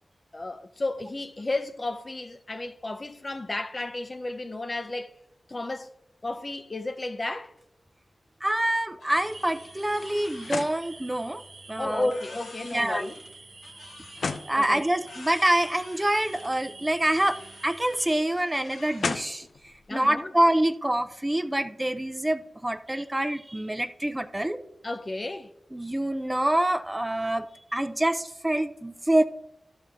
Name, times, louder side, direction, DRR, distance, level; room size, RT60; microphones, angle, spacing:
voice 1, 0.3-5.1 5.5-5.9 6.2-7.5 11.8-13.2 14.6-14.8 19.9-20.3 24.8-25.5, left 2 dB, 40° left, 0.8 m, -32 dB
voice 2, 8.4-11.4 11.7-12.1 12.7-13.1 14.5-24.6 25.7-27.5 27.7-29.2, right 1 dB, 20° right, 0.7 m, -26 dB
sound 1, 9.0-11.5 12.0-14.7 15.0-16.6 17.0-19.9, left 4 dB, 85° left, 0.6 m, -39 dB
sound 2, 9.1-18.1, right 3 dB, 85° right, 1.5 m, -47 dB
13.0 x 5.4 x 3.6 m
cardioid pair, 55°, 0 cm